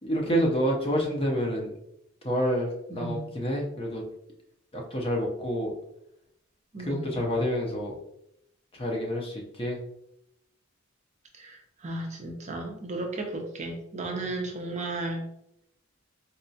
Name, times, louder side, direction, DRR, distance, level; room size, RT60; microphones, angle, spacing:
voice 1, 0.0-1.7 2.2-4.0 4.7-5.7 6.8-7.9 8.7-9.8, equal, 25° left, 0 dB, 0.6 m, -28 dB
voice 2, 2.9-3.3 6.7-7.2 11.3-15.3, right 2 dB, 35° right, 3 dB, 0.5 m, -34 dB
4.1 x 2.3 x 2.7 m, 0.79 s
head